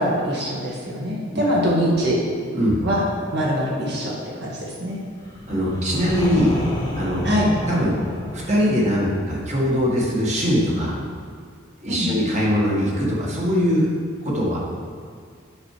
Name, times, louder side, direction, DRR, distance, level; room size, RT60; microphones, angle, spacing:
voice 1, 0.0-2.2 2.8-3.1 3.3-5.0 7.2-7.5 11.9-12.1, equal, 55° right, -4 dB, 1.9 m, -23 dB
sound 1, 5.2-10.9, left 1 dB, 20° left, 1.3 m, -32 dB
voice 2, 5.5-6.5 7.0-7.3 7.7-8.0 8.3-10.9 11.8-13.9 14.2-14.6, equal, 35° right, -4 dB, 1.8 m, -21 dB
8.7 x 6.2 x 4.9 m, 2.1 s
head